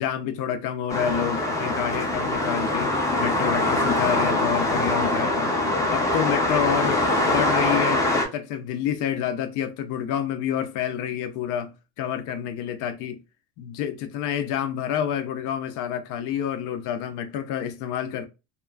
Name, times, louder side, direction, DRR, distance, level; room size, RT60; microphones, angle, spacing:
voice 1, 0.0-5.5 5.9-13.2 13.6-18.3, left 9 dB, 65° left, 0.5 m, -28 dB
sound 1, 0.9-8.3, left 1 dB, 10° left, 0.4 m, -23 dB
2.8 x 2.4 x 2.2 m
cardioid pair, 170°, 34 cm